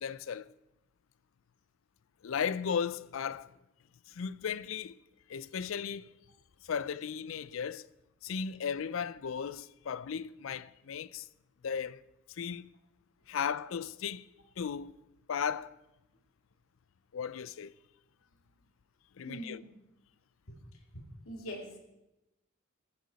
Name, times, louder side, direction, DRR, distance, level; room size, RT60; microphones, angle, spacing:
voice 1, 0.0-0.5 2.2-3.5 4.1-5.0 5.3-6.1 6.6-7.8 8.2-11.3 11.6-12.0 12.4-12.7 13.3-14.3 14.6-14.9 15.3-15.8 17.1-17.7 19.2-19.6, left 7 dB, 65° left, 0.4 m, -36 dB
voice 2, 19.2-19.7 20.5-20.6 20.9-21.8, equal, 85° left, 2.2 m, -43 dB
14.5 x 10.0 x 4.1 m
head